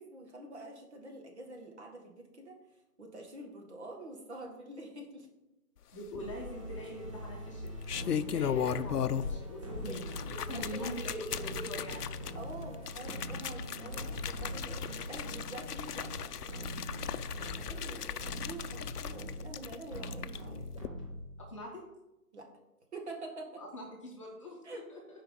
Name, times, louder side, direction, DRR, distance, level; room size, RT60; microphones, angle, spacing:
voice 1, 0.0-2.6 3.0-5.3 9.3-10.0 10.5-10.9 12.4-16.9 17.6-20.7 22.3-22.5 22.9-23.6 24.6-24.8, right 2 dB, 45° right, 2 dB, 1.8 m, -47 dB
voice 2, 5.9-7.6 8.0-10.1 10.3-12.2 21.4-21.8 23.6-25.0, equal, 20° left, -3 dB, 1.1 m, -43 dB
sound 1, 6.1-6.8 7.6-9.5 9.7-20.4 20.8-20.9, left 8 dB, 80° left, 0.6 m, -37 dB
sound 2, 6.2-21.6, equal, 20° right, 1.0 m, -42 dB
8.8 x 4.8 x 5.2 m, 0.94 s
figure-of-eight pair, 160°, 46 cm